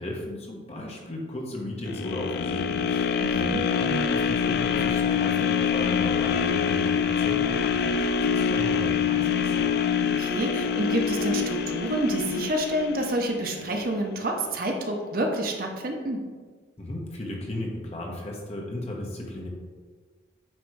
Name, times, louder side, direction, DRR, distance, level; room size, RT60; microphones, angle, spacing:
voice 1, 0.0-9.7 16.8-19.5, left 1 dB, 35° left, -1 dB, 1.2 m, -35 dB
sound 1, 1.9-14.0 14.4-14.5, left 6 dB, 55° left, 0.3 m, -25 dB
voice 2, 3.2-3.6 10.0-16.3, right 1 dB, 50° right, 2 dB, 0.8 m, -28 dB
8.9 x 3.2 x 4.7 m, 1.5 s
head